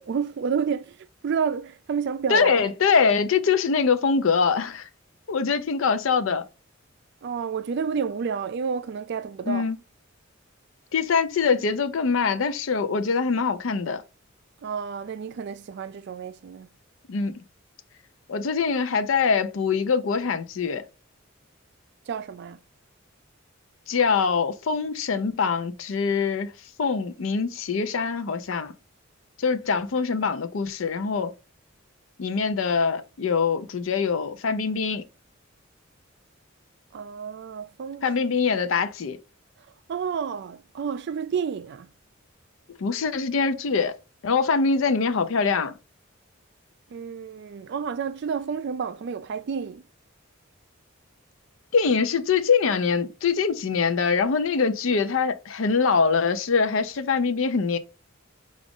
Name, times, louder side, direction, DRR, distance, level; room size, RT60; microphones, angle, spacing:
voice 1, 0.0-2.6 7.2-9.7 14.6-16.7 22.1-22.6 36.9-38.1 39.9-41.9 46.9-49.8, right 6 dB, 55° right, 0.3 m, -30 dB
voice 2, 2.3-4.9 5.3-6.4 9.5-9.8 10.9-14.0 17.1-17.3 18.3-20.9 23.9-26.5 26.8-28.7 29.4-31.3 32.2-35.0 38.0-39.2 42.8-44.0 44.2-45.7 51.7-57.8, left 5 dB, 70° left, 0.5 m, -23 dB
4.9 x 2.4 x 3.5 m
head